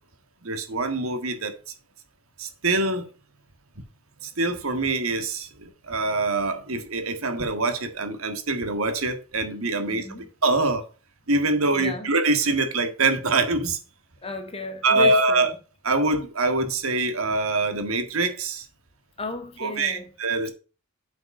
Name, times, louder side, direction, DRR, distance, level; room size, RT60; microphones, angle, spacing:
voice 1, 0.4-1.5 2.4-3.0 4.2-10.1 10.4-10.8 11.3-13.8 14.8-15.5 15.8-18.6 19.6-20.5, right 3 dB, 70° right, 1.7 m, -24 dB
voice 2, 9.8-10.3 11.7-12.1 14.2-15.6 19.2-20.1 20.4-20.5, left 3 dB, 25° left, 1.8 m, -34 dB
8.0 x 5.1 x 5.4 m
head